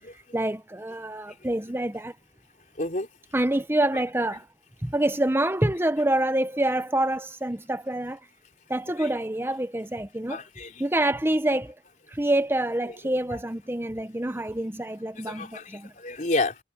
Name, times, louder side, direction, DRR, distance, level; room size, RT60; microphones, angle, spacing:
voice 1, 0.3-2.1 3.3-4.5 4.8-8.2 8.7-10.4 10.8-11.8 12.1-15.9, right 1 dB, 15° right, 0.9 m, -26 dB
voice 2, 2.8-3.1 9.0-9.1 10.3-10.8 15.3-16.6, left 2 dB, 45° left, 3.7 m, -30 dB
head